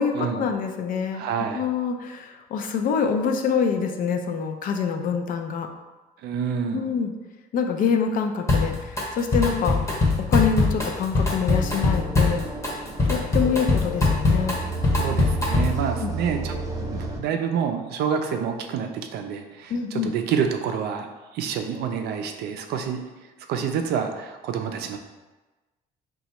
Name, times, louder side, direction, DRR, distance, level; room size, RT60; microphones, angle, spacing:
voice 1, 0.0-5.7 6.7-7.1 7.5-10.0 10.3-12.5 13.1-14.6 16.0-16.2 19.7-20.1, left 6 dB, 55° left, 4 dB, 0.4 m, -26 dB
voice 2, 1.1-1.6 6.2-6.9 15.0-16.6 16.9-23.0 23.5-25.0, right 7 dB, 70° right, 5 dB, 0.4 m, -28 dB
Drum kit, 8.5-9.0 9.3-15.9, left 3 dB, 20° left, 0.7 m, -22 dB
sound 1, 11.5-17.2, right 3 dB, 20° right, 0.5 m, -32 dB
4.0 x 2.3 x 2.9 m, 1.2 s
cardioid pair, 110°, 17 cm